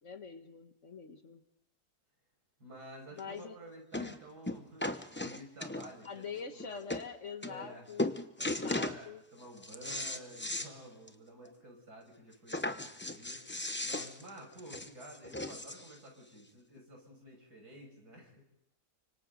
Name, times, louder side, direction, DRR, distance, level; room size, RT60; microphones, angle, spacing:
voice 1, 0.0-1.4 3.1-3.6 4.0-4.1 6.0-8.0 8.4-9.2, left 6 dB, 50° left, 8 dB, 1.6 m, -44 dB
voice 2, 2.6-4.9 5.2-6.9 7.4-7.9 8.4-18.5, right 1 dB, 85° right, 1 dB, 7.0 m, -51 dB
sound 1, 3.2-3.3 3.9-4.2 4.5-6.1 6.6-6.7 6.9-7.1 7.4-7.7 8.0-9.0 9.4-10.7 11.1-11.2 11.5-11.6 12.5-15.9 16.8-16.9, left 1 dB, 10° left, 0.5 m, -37 dB
29.5 x 25.5 x 4.0 m, 0.79 s
omnidirectional pair, 1.6 m